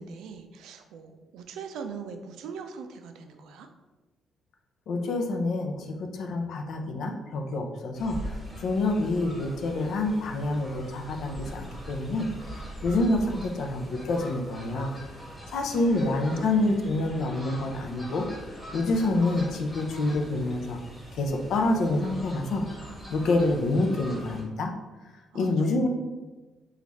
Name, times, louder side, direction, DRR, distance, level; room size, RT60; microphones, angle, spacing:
voice 1, 0.0-3.7 15.5-16.5 25.3-25.9, right 5 dB, 85° right, 6 dB, 0.4 m, -41 dB
voice 2, 4.9-8.2 8.6-12.3 12.8-14.9 15.5-18.3 18.7-20.8 21.1-22.7 23.1-24.7 25.3-25.9, left 2 dB, 70° left, 3 dB, 0.5 m, -27 dB
Fowl, 7.9-24.4, equal, ahead, 1.3 m, -42 dB
3.2 x 2.4 x 4.0 m, 1.2 s
cardioid pair, 90°, 0 cm